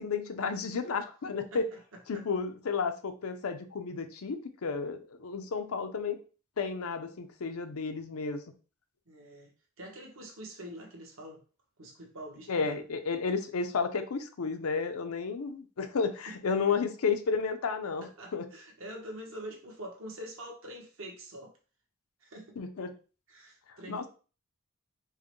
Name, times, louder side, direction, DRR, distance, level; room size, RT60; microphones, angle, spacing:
voice 1, 0.0-1.7 2.1-6.2 6.6-8.4 12.5-18.5 22.6-22.9 23.9-24.1, left 5 dB, 85° left, 0.5 m, -32 dB
voice 2, 1.9-2.2 9.1-9.5 9.8-11.4 11.8-12.8 16.5-16.8 18.0-21.6 22.2-22.6 23.3-24.1, equal, 70° right, 1.1 m, -45 dB
4.6 x 2.1 x 3.0 m
head